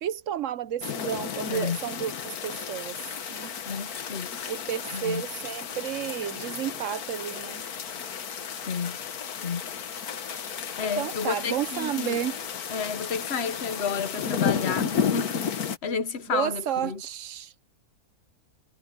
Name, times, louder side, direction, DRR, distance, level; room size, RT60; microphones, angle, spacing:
voice 1, 0.0-3.0 3.3-3.5 4.5-7.6 11.0-12.4 16.3-17.5, right 10 dB, 65° right, 1.0 m, -31 dB
sound 1, 0.8-15.8, left 7 dB, 80° left, 1.7 m, -33 dB
voice 2, 3.6-4.5 4.9-5.2 8.6-9.0 9.4-9.6 10.8-12.2 12.7-17.0, left 6 dB, 45° left, 1.3 m, -31 dB
omnidirectional pair, 1.6 m